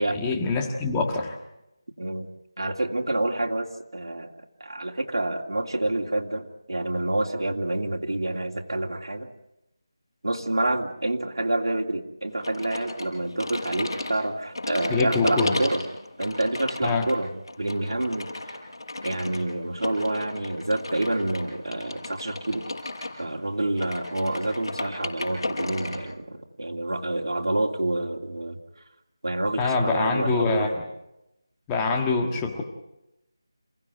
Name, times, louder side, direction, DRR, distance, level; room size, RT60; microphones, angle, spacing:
voice 1, 0.0-1.4 14.9-15.6 16.8-17.1 29.6-30.8 31.7-32.6, left 4 dB, 10° left, 2 dB, 1.5 m, -25 dB
voice 2, 2.0-2.3 2.6-4.3 4.6-9.3 10.2-15.9 16.2-17.3 17.6-18.3 19.0-22.7 23.2-28.6 29.2-30.7, right 1 dB, 80° right, 1 dB, 2.8 m, -28 dB
sound 1, 12.4-26.0, left 2 dB, 70° left, 5.8 m, -35 dB
28.5 x 16.5 x 9.1 m, 0.90 s
figure-of-eight pair, 175°, 2 cm